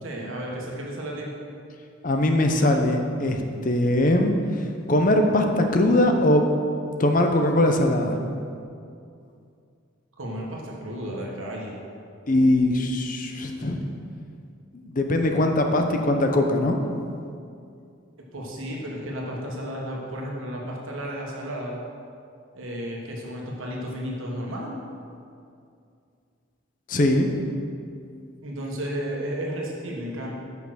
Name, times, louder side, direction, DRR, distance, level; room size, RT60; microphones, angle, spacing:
voice 1, 0.0-1.3 10.2-11.7 18.3-21.8 22.5-24.8 28.4-30.3, equal, 75° right, -2 dB, 1.4 m, -33 dB
voice 2, 2.0-4.4 4.9-6.5 7.0-8.2 12.3-13.8 14.9-16.8 26.9-27.3, left 1 dB, 40° left, 4 dB, 0.6 m, -21 dB
6.5 x 5.8 x 6.2 m, 2.4 s
head